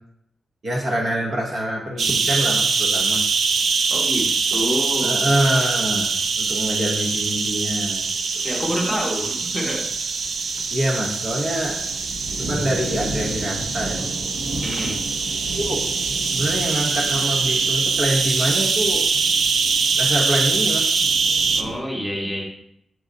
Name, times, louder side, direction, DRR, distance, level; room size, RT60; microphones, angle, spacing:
voice 1, 0.6-3.2 5.0-6.1 6.4-8.0 10.7-11.8 12.3-14.0 15.5-15.8 16.2-19.1 20.0-20.9, equal, 45° right, -2 dB, 1.1 m, -25 dB
sound 1, 2.0-21.6, right 4 dB, 65° right, 0.5 m, -23 dB
voice 2, 3.9-5.2 8.4-9.9 14.6-15.0 21.5-22.4, equal, 5° right, -3 dB, 1.4 m, -27 dB
sound 2, 10.2-21.8, right 1 dB, 85° right, 1.3 m, -35 dB
6.2 x 3.9 x 4.0 m, 0.74 s
wide cardioid pair, 140°, 0 cm